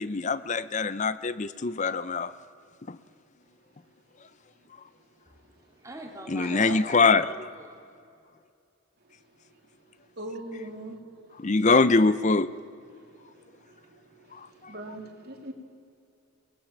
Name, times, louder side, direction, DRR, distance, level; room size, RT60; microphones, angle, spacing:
voice 1, 0.0-2.3 2.9-3.0 6.3-7.4 11.4-12.5, left 4 dB, 35° left, 0.6 m, -23 dB
voice 2, 5.3-7.8, right 1 dB, 15° right, 2.6 m, -45 dB
voice 3, 10.2-11.0 14.7-15.5, right 1 dB, 45° right, 2.7 m, -38 dB
24.0 x 20.0 x 7.3 m
head